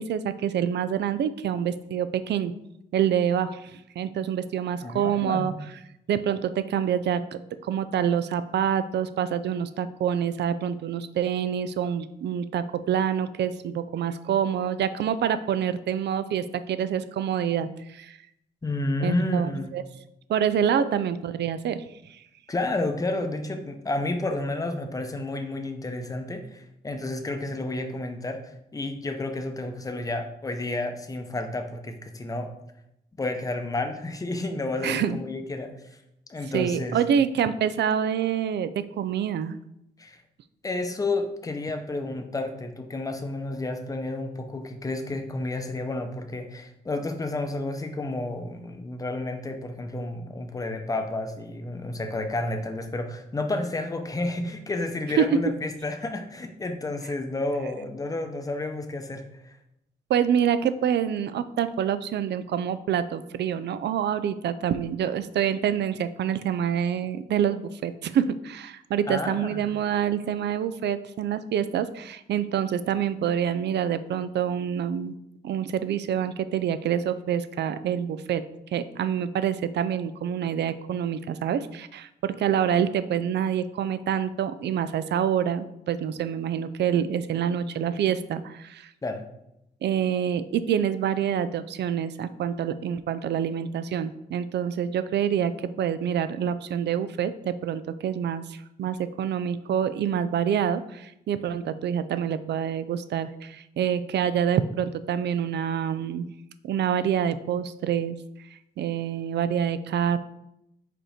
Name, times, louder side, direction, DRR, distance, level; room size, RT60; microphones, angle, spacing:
voice 1, 0.0-2.5 2.9-5.5 6.1-7.2 7.6-18.2 19.0-19.8 20.3-21.8 22.1-22.2 34.8-35.2 36.5-39.5 55.2-55.4 60.1-75.2 75.4-78.4 78.7-88.9 89.8-106.3 106.6-108.2 108.8-110.2, right 8 dB, 75° right, 13 dB, 0.4 m, -26 dB
voice 2, 4.8-5.5 18.6-19.7 20.8-20.9 22.5-32.5 33.2-35.7 36.3-37.0 40.0-40.2 40.6-59.6 69.1-69.6 89.0-89.2, left 2 dB, 20° left, 6 dB, 0.7 m, -31 dB
5.1 x 4.4 x 5.0 m, 0.82 s
wide cardioid pair, 135°, 18 cm